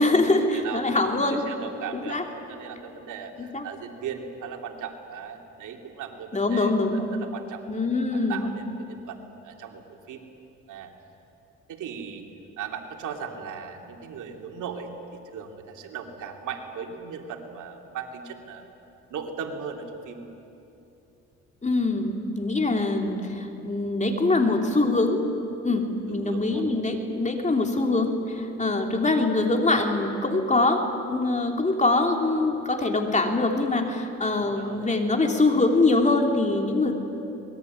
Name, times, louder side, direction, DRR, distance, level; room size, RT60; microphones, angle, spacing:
voice 1, 0.0-1.4 1.9-2.2 3.4-3.6 6.3-7.0 7.7-8.4 21.6-25.2 25.6-37.0, left 2 dB, 25° left, 3 dB, 3.2 m, -23 dB
voice 2, 0.5-7.8 8.1-10.2 10.7-10.9 11.7-12.2 12.6-18.7 19.1-20.2 26.1-26.6 34.3-34.9, right 6 dB, 80° right, 3 dB, 3.0 m, -38 dB
25.0 x 21.0 x 9.6 m, 2.8 s
cardioid pair, 90°, 30 cm